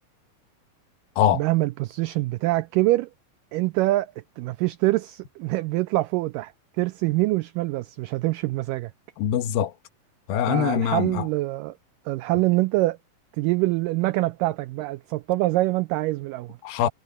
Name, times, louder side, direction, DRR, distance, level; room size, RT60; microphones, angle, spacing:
voice 1, 1.3-3.1 3.5-8.9 10.5-11.8 12.1-13.0 13.3-16.6, right 19 dB, 80° right, 2.0 m, -25 dB
voice 2, 9.2-9.7 10.3-11.3 16.6-16.9, left 10 dB, 75° left, 3.0 m, -23 dB
omnidirectional pair, 4.2 m